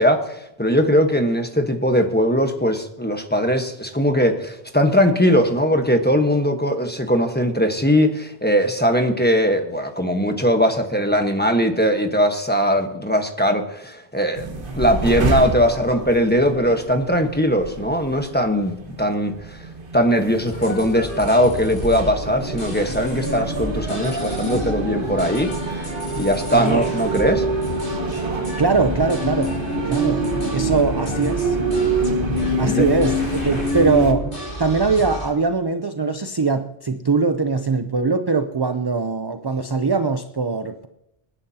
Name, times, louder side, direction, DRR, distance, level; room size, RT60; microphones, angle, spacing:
voice 1, 0.0-19.6 19.9-25.5 26.2-27.5 32.6-32.9, equal, 10° left, 5 dB, 1.1 m, -20 dB
sound 1, 14.4-34.1, right 1 dB, 50° right, 1.6 m, -26 dB
sound 2, 20.5-35.3, left 1 dB, 50° left, 4.9 m, -33 dB
voice 2, 26.5-26.9 28.6-29.6 29.8-31.6 32.6-34.3 34.6-40.9, right 4 dB, 30° right, 8 dB, 0.4 m, -21 dB
27.0 x 10.5 x 2.8 m, 0.84 s
omnidirectional pair, 1.1 m